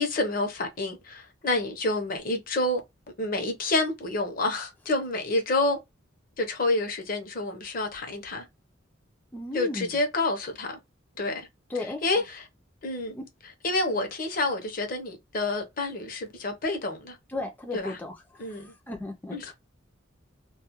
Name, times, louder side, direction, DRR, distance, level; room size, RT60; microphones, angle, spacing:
voice 1, 0.0-2.8 3.2-5.8 6.4-8.5 9.5-10.8 11.2-11.5 12.0-12.4 12.8-13.1 13.6-17.2 17.7-18.0 18.4-18.7 19.3-19.5, left 2 dB, 45° left, 0.7 m, -28 dB
voice 2, 9.3-10.0 11.7-12.0 13.1-13.2 17.3-19.5, left 2 dB, 10° left, 0.4 m, -35 dB
2.3 x 2.2 x 2.8 m
head